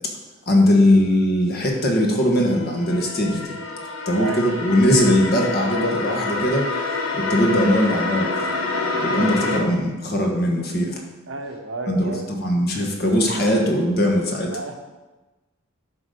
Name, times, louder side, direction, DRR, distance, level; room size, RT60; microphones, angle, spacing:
voice 1, 0.5-3.6 4.0-6.7 7.1-8.5 9.0-11.0 11.9-14.5, left 1 dB, 45° left, 1 dB, 1.5 m, -20 dB
sound 1, 1.9-9.6, left 3 dB, 85° left, 1.5 m, -27 dB
voice 2, 4.1-4.4 9.1-9.4 11.3-12.3 14.5-14.7, right 3 dB, 65° right, 5 dB, 0.9 m, -31 dB
10.5 x 4.0 x 6.6 m, 1.2 s
head